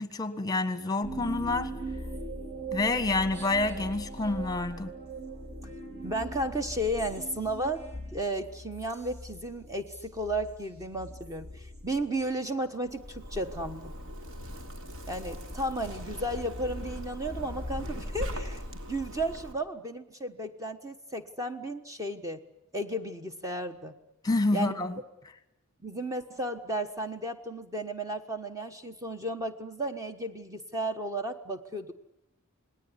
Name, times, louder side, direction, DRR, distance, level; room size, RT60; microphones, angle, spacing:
voice 1, 0.0-1.7 2.7-4.9 24.2-25.0, left 2 dB, 15° left, 1.6 m, -28 dB
sound 1, 1.0-12.6, right 2 dB, 45° right, 5.1 m, -41 dB
voice 2, 6.0-7.8 8.1-13.9 15.1-22.4 22.7-23.9 24.5-24.8 25.8-31.9, right 1 dB, 15° right, 1.2 m, -34 dB
Zipper (clothing), 12.9-19.5, equal, 60° right, 3.2 m, -39 dB
28.5 x 19.5 x 9.7 m
head